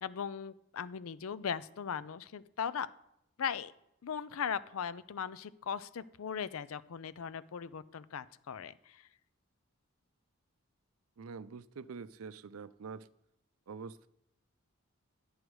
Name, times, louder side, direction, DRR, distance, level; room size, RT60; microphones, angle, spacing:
voice 1, 0.0-2.9 3.4-3.7 4.0-9.1, left 7 dB, 75° left, 0.4 m, -38 dB
voice 2, 11.2-13.1 13.7-14.1, right 5 dB, 80° right, 0.5 m, -45 dB
11.5 x 6.4 x 4.7 m
head